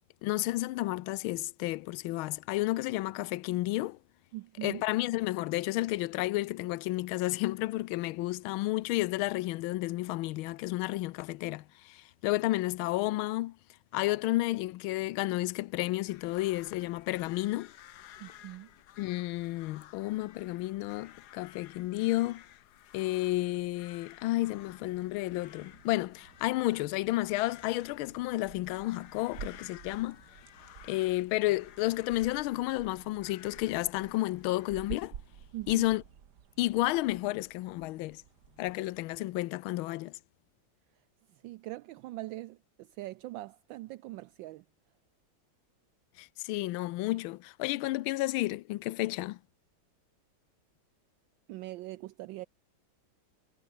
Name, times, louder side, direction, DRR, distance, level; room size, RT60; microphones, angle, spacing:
voice 1, 0.2-4.0 4.6-13.5 13.9-17.7 19.0-22.4 22.9-30.2 30.9-35.1 35.7-36.0 36.6-38.2 38.6-40.1 46.2-49.4, left 18 dB, 85° left, 1.4 m, -31 dB
voice 2, 4.3-4.8 18.2-18.7 35.5-35.9 41.3-44.6 51.5-52.5, right 17 dB, 75° right, 1.2 m, -42 dB
sound 1, 16.1-35.1, left 12 dB, 65° left, 1.2 m, -55 dB
sound 2, 24.5-39.4, right 8 dB, 55° right, 1.8 m, -51 dB
omnidirectional pair, 2.2 m